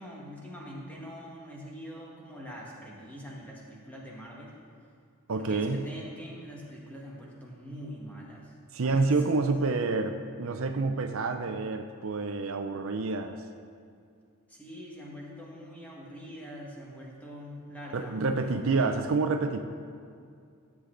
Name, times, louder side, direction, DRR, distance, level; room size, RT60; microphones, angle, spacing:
voice 1, 0.0-4.5 5.3-8.5 8.8-9.4 14.5-18.8, equal, 5° left, -4 dB, 1.6 m, -44 dB
voice 2, 5.3-5.8 8.7-13.4 17.9-19.6, right 3 dB, 65° right, 6 dB, 0.5 m, -28 dB
13.5 x 8.2 x 3.9 m, 2.3 s
head